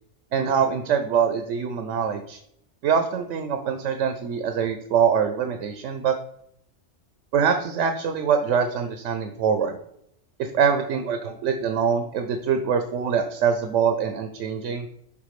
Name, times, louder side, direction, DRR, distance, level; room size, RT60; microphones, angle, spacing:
voice 1, 0.3-2.4 2.8-6.2 7.3-9.8 10.4-14.9, right 7 dB, 85° right, 7 dB, 1.0 m, -24 dB
5.8 x 3.6 x 4.9 m, 0.73 s
omnidirectional pair, 1.2 m